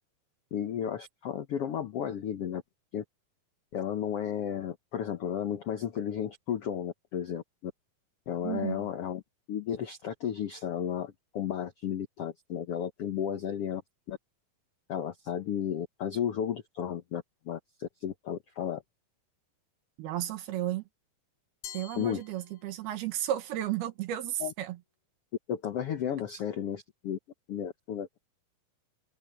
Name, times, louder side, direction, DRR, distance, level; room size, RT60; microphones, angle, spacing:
voice 1, 0.5-2.6 2.9-3.0 3.7-7.7 8.3-9.2 9.5-13.8 14.1-14.2 14.9-18.8 21.9-22.2 24.4-24.5 25.5-27.2 27.5-28.3, left 9 dB, 85° left, 1.3 m, -33 dB
voice 2, 8.4-8.9 20.0-20.8 21.7-24.8, right 12 dB, 85° right, 3.6 m, -33 dB
Glass, 21.6-23.1, left 10 dB, 60° left, 2.4 m, -47 dB
open air
omnidirectional pair, 4.3 m